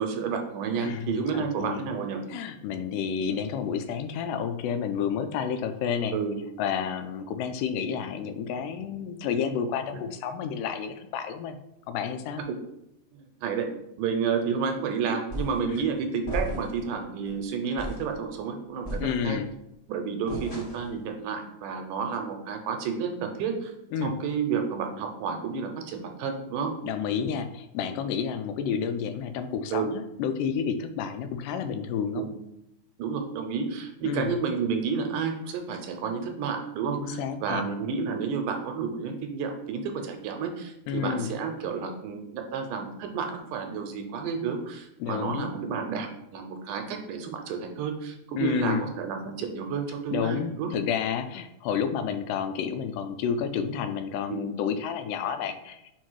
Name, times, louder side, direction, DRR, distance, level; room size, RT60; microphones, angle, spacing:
voice 1, 0.0-2.2 6.1-6.4 9.9-10.0 12.5-12.6 13.1-13.7 14.0-19.4 19.9-23.7 24.0-26.7 29.7-29.9 32.2-32.3 33.0-50.7 54.3-54.5, right 6 dB, 80° right, 4 dB, 2.0 m, -31 dB
voice 2, 0.8-1.9 2.3-6.2 6.6-11.6 11.9-12.4 15.7-15.8 19.0-19.5 23.9-24.1 26.8-32.2 34.0-34.3 37.0-37.6 40.9-41.3 45.0-45.5 48.3-48.9 50.1-56.0, left 7 dB, 85° left, 9 dB, 2.1 m, -30 dB
sound 1, 15.3-15.7 16.2-16.9 17.2-17.4 17.8-18.1 18.8-19.5 20.3-21.0, equal, 30° left, 1.0 m, -35 dB
4.6 x 4.5 x 4.5 m, 0.84 s
omnidirectional pair, 3.9 m